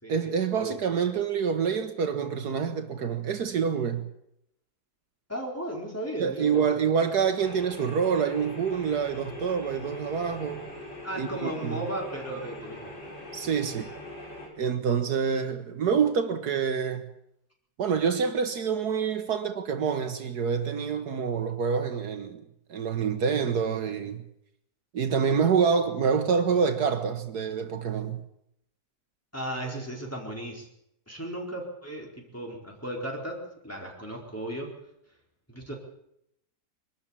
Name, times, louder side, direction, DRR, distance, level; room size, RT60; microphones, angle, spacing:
voice 1, 0.1-4.1 6.2-10.6 11.2-11.8 13.3-13.9 14.6-17.1 17.8-22.4 22.7-24.2 24.9-28.2, right 6 dB, 70° right, 1.7 m, -27 dB
voice 2, 5.3-6.7 11.0-12.9 29.3-30.7 31.1-32.1 32.3-34.7 35.5-35.7, right 1 dB, 10° left, 4.4 m, -35 dB
sound 1, 7.4-14.5, left 1 dB, 80° left, 5.3 m, -42 dB
22.5 x 13.0 x 8.8 m
omnidirectional pair, 1.8 m